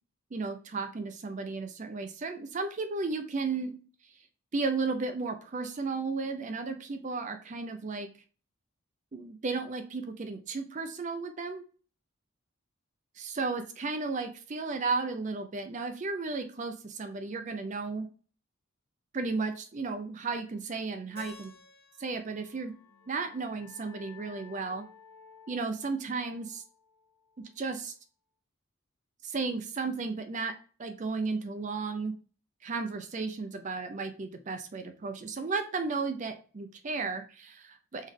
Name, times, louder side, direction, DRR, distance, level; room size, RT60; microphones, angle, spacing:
voice 1, 0.3-3.7 4.5-8.1 9.1-11.6 13.2-18.1 19.1-21.5 22.0-22.7 23.1-24.8 25.5-26.6 27.6-27.9 29.2-30.5 30.8-32.1 32.6-38.1, right 4 dB, 35° right, 7 dB, 0.4 m, -34 dB
Keyboard (musical), 21.2-24.1, left 4 dB, 50° left, 1.0 m, -54 dB
sound 1, 22.5-27.9, left 5 dB, 75° left, 0.7 m, -56 dB
3.7 x 3.1 x 3.5 m, 0.39 s
head